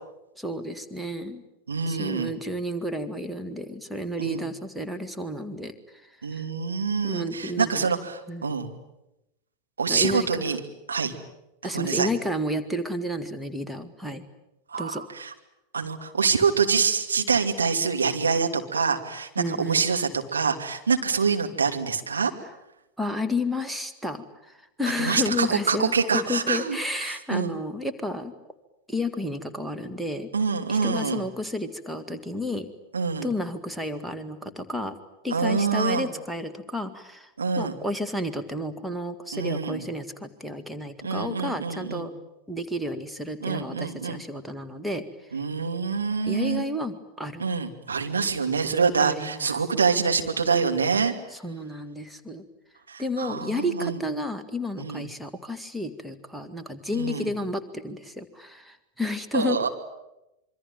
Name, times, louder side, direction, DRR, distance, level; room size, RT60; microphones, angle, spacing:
voice 1, 0.4-1.4 1.9-5.7 6.0-6.4 7.0-7.9 8.3-8.5 9.9-10.3 11.6-14.2 14.8-15.0 19.4-19.8 23.0-28.3 28.9-30.3 30.7-32.7 33.2-35.0 35.2-37.3 37.6-42.1 42.5-45.0 46.3-47.4 49.0-49.5 51.3-52.4 53.0-59.7, left 1 dB, 5° right, 7 dB, 2.0 m, -31 dB
voice 2, 1.7-2.3 4.2-4.5 6.2-8.7 9.8-10.6 10.9-11.1 11.7-12.1 14.7-15.3 15.7-22.3 25.0-27.6 30.3-31.2 32.9-33.3 35.3-36.1 37.4-37.7 39.3-39.9 41.0-42.1 43.4-44.2 45.3-46.6 47.4-51.1 52.9-54.0 54.8-55.0 56.9-57.3 59.3-59.7, right 5 dB, 75° right, 4 dB, 2.6 m, -26 dB
26.0 x 24.5 x 9.0 m, 0.91 s
figure-of-eight pair, 90°, 0 cm